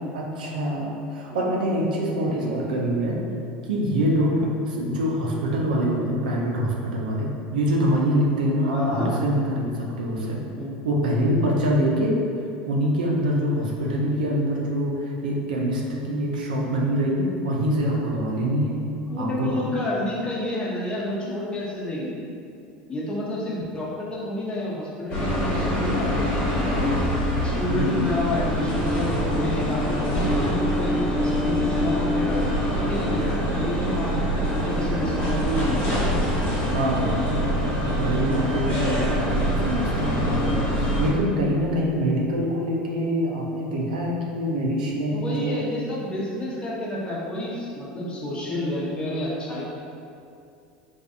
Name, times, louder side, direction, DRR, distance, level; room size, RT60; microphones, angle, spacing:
voice 1, 0.1-3.2 3.7-4.4 4.7-10.4 10.8-12.2 12.7-18.8 19.2-19.8 21.2-21.3 27.7-28.0 36.7-37.3 37.9-45.6, equal, 85° right, -2 dB, 0.4 m, -25 dB
voice 2, 8.7-9.1 10.6-10.7 13.8-14.0 19.1-22.2 22.9-26.8 27.4-35.9 45.1-49.6, left 1 dB, 20° left, -6 dB, 0.7 m, -30 dB
sound 1, 25.1-41.1, equal, 40° left, 1.0 m, -24 dB
2.5 x 2.4 x 2.4 m, 2.5 s
hypercardioid pair, 90°, 4 cm